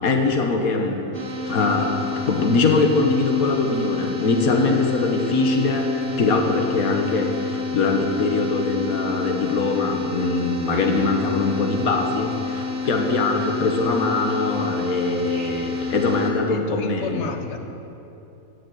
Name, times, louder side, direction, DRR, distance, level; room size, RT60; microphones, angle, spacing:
voice 1, 0.0-1.1 1.4-17.3, left 3 dB, 65° left, 3 dB, 1.7 m, -22 dB
sound 1, 1.1-16.3, left 4 dB, 35° right, 1.8 m, -29 dB
voice 2, 16.5-17.6, left 4 dB, 50° left, 6 dB, 1.3 m, -31 dB
16.0 x 7.5 x 9.2 m, 2.9 s
omnidirectional pair, 1.6 m